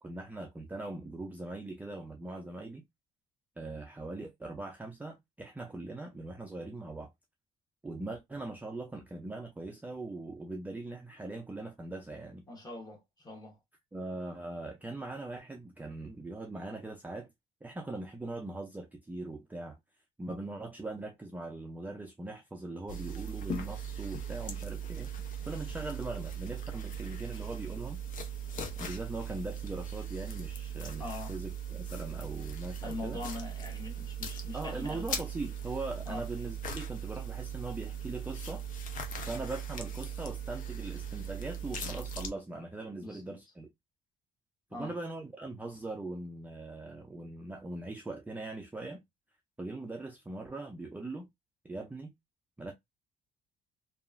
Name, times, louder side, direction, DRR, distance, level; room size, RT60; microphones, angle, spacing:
voice 1, 0.0-2.9 3.6-7.1 7.8-12.4 13.9-17.3 17.6-19.8 20.2-25.1 25.4-28.0 28.8-33.2 34.5-38.6 39.2-43.7 44.7-49.0 49.6-51.3 51.6-52.1 52.6-52.7, right 2 dB, 10° right, 0.4 m, -41 dB
voice 2, 12.5-13.6 31.0-31.3 32.8-35.0 36.0-36.2 43.0-43.3 44.7-44.9, left 2 dB, 25° left, 1.2 m, -42 dB
sound 1, 22.9-42.3, right 5 dB, 50° left, 0.6 m, -39 dB
2.9 x 2.4 x 2.4 m
cardioid pair, 110°, 17 cm